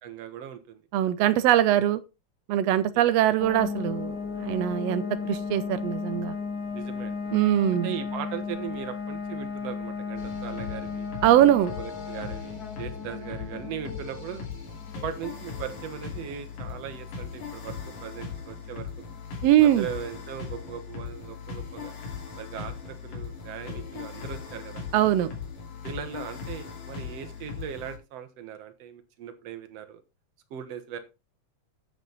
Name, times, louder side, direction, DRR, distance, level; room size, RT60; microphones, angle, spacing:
voice 1, 0.0-0.8 2.9-3.0 6.7-7.2 7.8-11.1 11.8-14.4 15.0-18.9 19.6-21.9 22.4-24.8 25.8-30.0 30.5-31.0, right 9 dB, 60° right, 2.1 m, -39 dB
voice 2, 0.9-2.0 2.5-6.3 7.3-7.9 11.2-11.7 19.4-19.9 24.9-25.3, right 12 dB, 90° right, 1.4 m, -22 dB
sound 1, 3.4-18.0, left 5 dB, 40° left, 1.5 m, -35 dB
sound 2, 10.2-28.0, left 6 dB, 80° left, 4.3 m, -39 dB
9.3 x 8.1 x 4.1 m
omnidirectional pair, 3.8 m